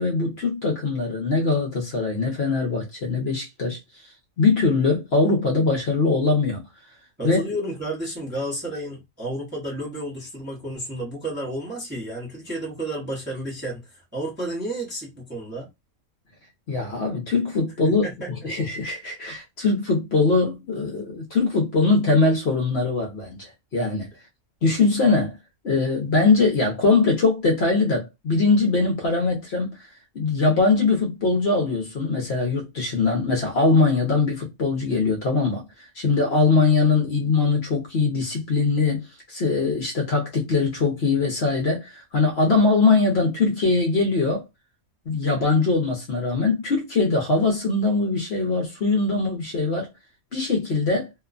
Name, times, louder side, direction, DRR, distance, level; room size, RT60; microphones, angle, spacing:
voice 1, 0.0-3.8 4.4-6.6 7.2-7.4 16.7-18.0 18.4-24.1 24.6-25.4 25.6-29.8 30.1-35.6 35.9-44.4 45.1-49.9 50.3-51.1, left 3 dB, 55° left, 0.9 m, -22 dB
voice 2, 7.2-15.7 17.8-18.5, right 1 dB, 10° right, 0.7 m, -31 dB
2.9 x 2.1 x 2.4 m
omnidirectional pair, 1.5 m